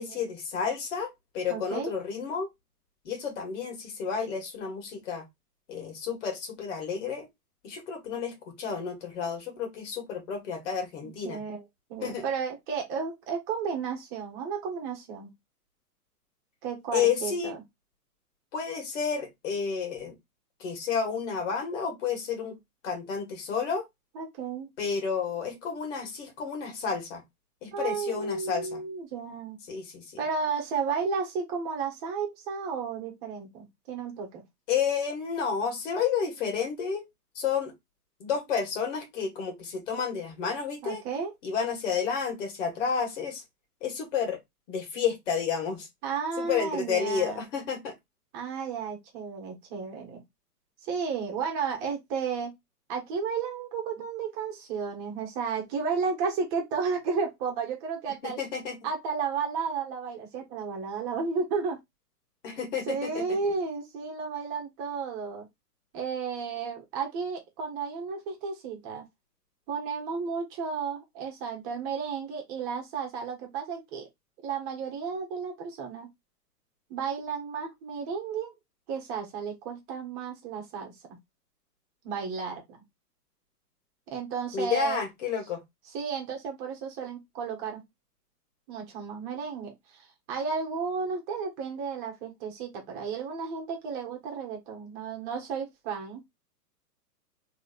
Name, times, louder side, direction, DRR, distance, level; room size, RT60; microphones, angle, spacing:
voice 1, 0.0-2.5 3.0-5.2 5.7-7.3 7.6-11.4 12.0-12.3 16.9-17.5 18.5-20.2 20.6-22.6 22.8-23.8 24.8-27.2 27.6-28.8 29.7-30.0 34.7-37.1 37.3-37.7 38.2-41.0 41.4-43.4 43.8-44.4 44.7-45.9 46.4-47.9 58.2-58.8 62.4-63.4 84.5-85.6, left 6 dB, 50° left, 1.7 m, -31 dB
voice 2, 1.5-1.9 11.0-11.6 11.9-15.3 16.6-17.6 24.1-24.7 27.7-29.6 30.2-34.4 40.8-41.3 46.0-47.4 48.3-50.2 50.8-52.5 52.9-58.4 58.8-61.8 62.9-65.5 65.9-69.1 69.7-74.1 74.4-76.1 76.9-78.5 78.9-80.9 82.0-82.8 84.1-85.0 85.9-87.8 88.7-96.2, right 5 dB, 30° right, 1.4 m, -33 dB
3.8 x 3.1 x 2.4 m
hypercardioid pair, 125°, 48 cm